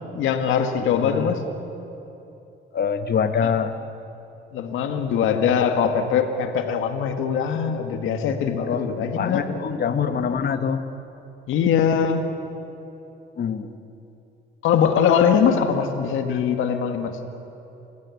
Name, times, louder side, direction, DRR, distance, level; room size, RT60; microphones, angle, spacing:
voice 1, 0.1-1.4 4.5-9.5 11.5-12.2 14.6-17.1, left 7 dB, 85° left, 7 dB, 1.9 m, -22 dB
voice 2, 0.9-1.5 2.7-3.7 8.6-10.8 13.4-13.7 16.3-16.4, left 7 dB, 55° left, 9 dB, 1.5 m, -25 dB
29.5 x 16.0 x 8.5 m, 3.0 s
cardioid pair, 90°, 20 cm